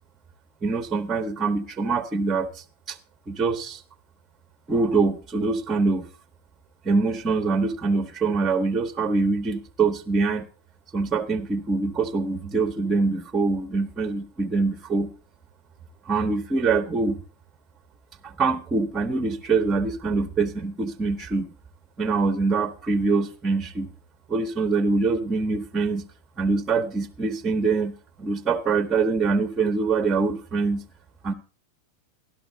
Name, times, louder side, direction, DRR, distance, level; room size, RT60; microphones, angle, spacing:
voice 1, 0.6-3.0 3.3-3.8 4.7-6.1 6.8-10.5 10.9-15.1 16.1-17.2 18.2-21.5 22.0-23.9 24.3-26.0 26.4-27.9 28.2-30.8 31.2-31.3, right 4 dB, 20° right, 6 dB, 0.9 m, -24 dB
13.0 x 11.5 x 3.9 m, 0.38 s
figure-of-eight pair, 90°, 0 cm